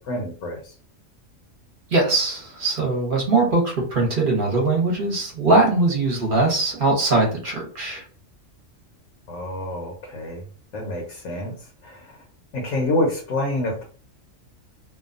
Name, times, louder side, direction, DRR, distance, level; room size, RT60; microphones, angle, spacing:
voice 1, 0.1-0.6 9.3-10.4 10.7-11.5 11.8-12.0 12.5-13.8, left 1 dB, 80° left, 0 dB, 1.1 m, -27 dB
voice 2, 1.9-8.0, right 2 dB, 45° right, 0 dB, 0.9 m, -21 dB
2.7 x 2.2 x 2.4 m, 0.40 s
omnidirectional pair, 1.4 m